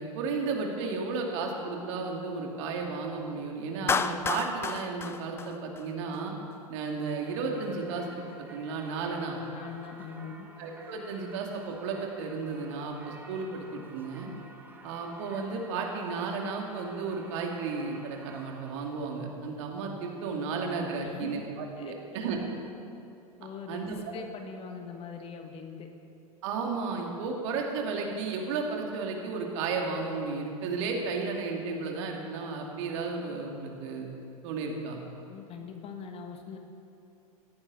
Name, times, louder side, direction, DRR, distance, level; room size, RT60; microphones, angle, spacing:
voice 1, 0.0-6.3 6.7-8.2 8.5-9.4 10.6-14.3 14.8-22.4 23.7-23.9 26.4-34.1 34.4-35.0, right 4 dB, 50° right, 1 dB, 2.8 m, -33 dB
Clapping, 3.9-6.2, left 5 dB, 15° left, 0.5 m, -31 dB
Singing / Church bell, 7.2-19.1, right 2 dB, 10° right, 1.9 m, -51 dB
voice 2, 9.4-10.5 21.0-21.4 21.8-22.2 23.4-25.9 35.3-36.6, left 6 dB, 30° left, 5 dB, 1.6 m, -42 dB
17.5 x 15.5 x 4.2 m, 2.7 s
figure-of-eight pair, 90°, 19 cm